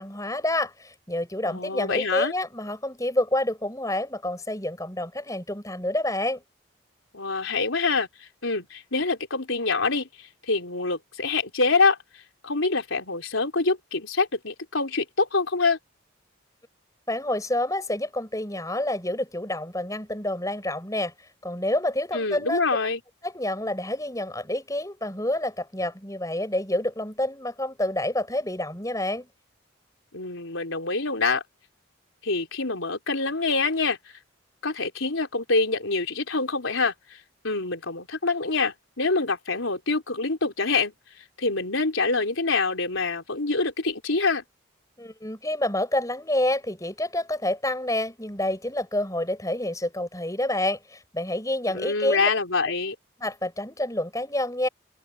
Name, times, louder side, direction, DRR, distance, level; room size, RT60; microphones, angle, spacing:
voice 1, 0.0-6.4 17.1-21.1 21.4-22.6 23.2-29.3 45.0-52.3 53.2-54.7, left 1 dB, 15° left, 7.0 m, -28 dB
voice 2, 1.5-2.3 7.1-12.0 12.4-15.8 22.1-23.0 30.1-31.4 32.2-34.0 34.6-37.2 37.4-40.9 41.4-44.4 51.7-53.0, left 3 dB, 75° left, 3.8 m, -25 dB
head